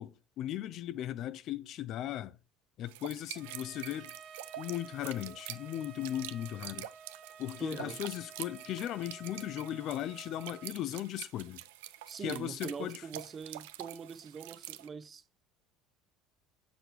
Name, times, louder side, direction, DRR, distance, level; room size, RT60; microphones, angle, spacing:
voice 1, 0.0-2.4 2.8-4.1 4.6-6.9 7.4-11.6 12.2-13.0, left 12 dB, 55° left, 0.5 m, -37 dB
sound 1, 2.9-14.9, right 14 dB, 85° right, 0.4 m, -47 dB
Trumpet, 3.4-10.7, right 6 dB, 50° right, 0.9 m, -52 dB
voice 2, 7.6-8.0 12.1-15.4, right 6 dB, 30° right, 0.5 m, -43 dB
6.6 x 6.1 x 3.1 m
supercardioid pair, 95°, 0 cm